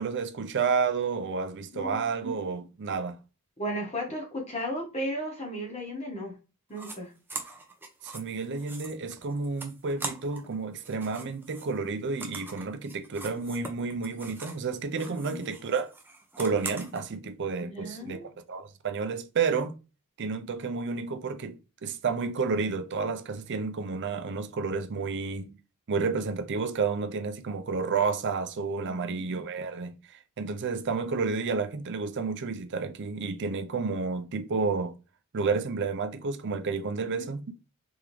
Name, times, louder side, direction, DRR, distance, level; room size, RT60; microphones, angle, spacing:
voice 1, 0.0-3.2 8.0-15.9 16.4-19.8 20.2-25.6 25.9-35.0 35.3-37.4, right 4 dB, 55° right, 0.5 m, -31 dB
voice 2, 1.7-2.1 3.6-6.4 6.7-7.1 15.0-15.4 17.6-18.2 37.0-37.3, equal, 30° left, 1.3 m, -35 dB
sound 1, 6.7-7.0 7.3-10.5 10.8-14.7 14.9-17.0, right 3 dB, 10° right, 0.5 m, -42 dB
3.5 x 3.4 x 3.1 m
head